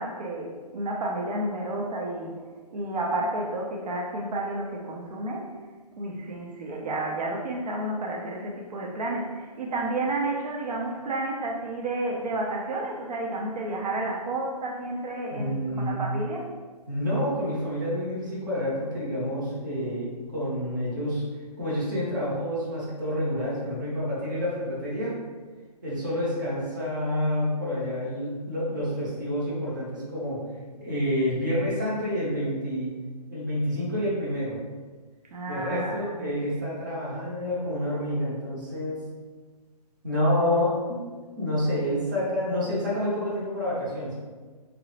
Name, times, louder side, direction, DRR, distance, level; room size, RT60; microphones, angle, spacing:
voice 1, 0.0-2.3 2.7-5.5 6.0-16.5 30.8-30.9 35.3-36.3, right 2 dB, 75° right, -1 dB, 0.6 m, -31 dB
voice 2, 15.3-16.0 16.9-21.2 21.6-25.1 25.8-30.4 30.8-32.9 33.3-34.6 35.5-39.1 40.0-41.0 41.4-44.2, left 1 dB, 30° right, -7 dB, 0.6 m, -28 dB
2.8 x 2.0 x 2.8 m, 1.4 s
hypercardioid pair, 175°, 20 cm